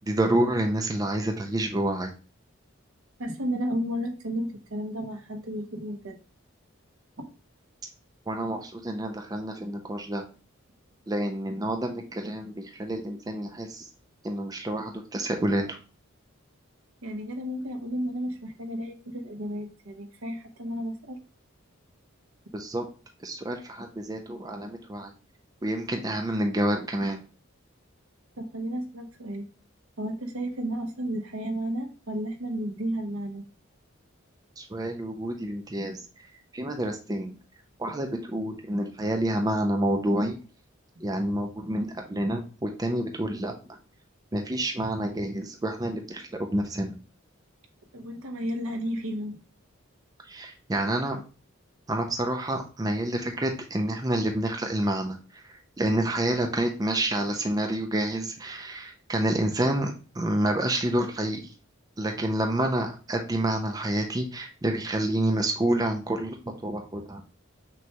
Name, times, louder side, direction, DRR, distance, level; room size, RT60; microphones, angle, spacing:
voice 1, 0.0-2.1 8.3-10.2 11.1-13.9 14.2-15.8 22.5-22.8 23.2-25.1 25.6-27.2 34.6-36.1 36.5-37.3 37.8-40.4 41.0-43.8 44.3-47.0 50.3-51.2 51.9-61.5 62.0-67.2, right 1 dB, 20° right, 4 dB, 0.4 m, -28 dB
voice 2, 3.2-6.2 17.0-21.2 28.4-29.4 30.0-33.4 47.9-49.4, equal, 85° right, 3 dB, 0.9 m, -32 dB
6.0 x 2.3 x 2.8 m, 0.35 s
head